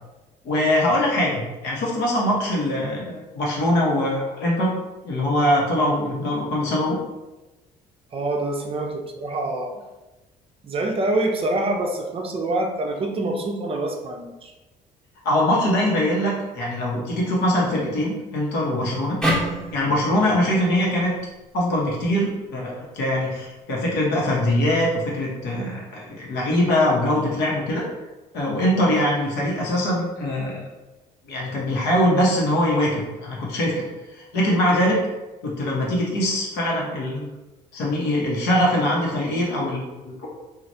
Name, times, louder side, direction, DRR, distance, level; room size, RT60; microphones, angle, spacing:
voice 1, 0.4-4.7 5.0-7.0 15.2-19.2 19.7-21.1 21.5-27.8 28.3-30.7 31.3-33.8 34.3-35.0 35.4-37.3 37.7-40.3, left 1 dB, 80° left, -4 dB, 1.0 m, -22 dB
voice 2, 8.1-9.8 10.6-14.5, right 2 dB, 35° right, 2 dB, 0.5 m, -26 dB
sound 1, 19.2-22.4, equal, 5° left, 0.9 m, -29 dB
3.1 x 2.4 x 2.6 m, 1.1 s
cardioid pair, 110°, 17 cm